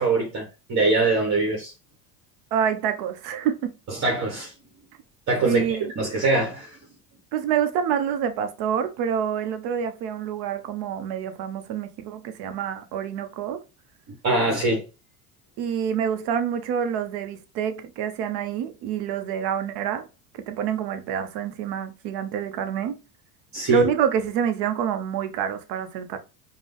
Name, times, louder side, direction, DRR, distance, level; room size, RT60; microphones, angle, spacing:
voice 1, 0.0-1.7 4.0-4.5 5.3-6.8 14.2-14.8 23.5-23.8, right 3 dB, 40° right, 1.4 m, -23 dB
voice 2, 2.5-3.7 5.4-5.9 7.3-13.6 15.6-20.1 20.3-23.0 23.7-26.2, right 8 dB, 60° right, 0.9 m, -27 dB
5.1 x 2.4 x 3.2 m
hypercardioid pair, 80°, 44 cm